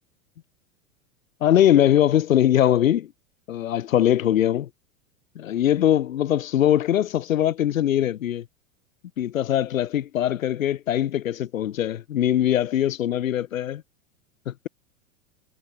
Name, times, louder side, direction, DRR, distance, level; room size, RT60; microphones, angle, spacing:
voice 1, 1.4-3.1 3.5-4.7 5.3-8.4 9.2-13.8 14.5-14.7, left 11 dB, 75° left, 4.8 m, -21 dB
hypercardioid pair, 100°, 40 cm